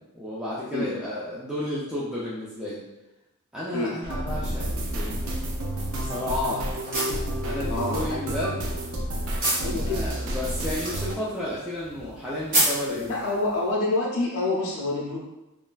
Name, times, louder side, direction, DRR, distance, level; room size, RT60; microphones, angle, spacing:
voice 1, 0.1-2.8 3.5-5.2 5.9-6.6 7.4-8.6 9.7-13.2, left 1 dB, 5° right, -9 dB, 0.3 m, -32 dB
sound 1, 4.0-11.2, right 1 dB, 65° right, 0.5 m, -30 dB
sound 2, 5.1-13.7, right 1 dB, 40° right, 1.0 m, -33 dB
voice 2, 6.3-6.6 7.7-8.5 9.6-10.0 13.1-15.2, left 2 dB, 70° left, -5 dB, 0.6 m, -27 dB
3.1 x 2.4 x 2.2 m, 0.95 s
head